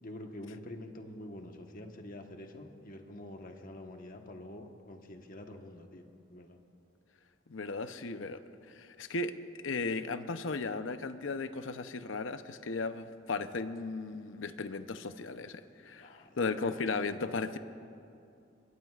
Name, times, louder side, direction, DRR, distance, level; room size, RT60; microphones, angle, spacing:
voice 1, 0.0-6.6 16.0-16.4, left 1 dB, 45° left, 3 dB, 1.3 m, -47 dB
voice 2, 7.5-8.4 8.7-9.3 9.6-16.1 16.4-17.6, left 3 dB, 85° left, 10 dB, 0.7 m, -36 dB
24.0 x 22.5 x 2.5 m, 2.6 s
head